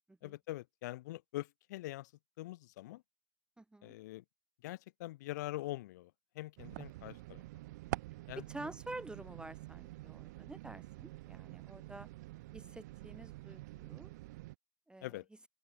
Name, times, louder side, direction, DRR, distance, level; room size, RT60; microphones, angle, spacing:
voice 1, 0.2-2.1 2.4-3.0 3.8-4.2 4.6-7.4 8.3-8.7 15.0-15.3, left 17 dB, 70° left, 1.8 m, -44 dB
voice 2, 3.6-3.9 8.5-12.1 12.5-14.1 14.9-15.1, right 2 dB, 10° right, 0.8 m, -49 dB
sound 1, 6.6-14.6, right 19 dB, 65° right, 1.8 m, -47 dB
open air
figure-of-eight pair, 75°, 10 cm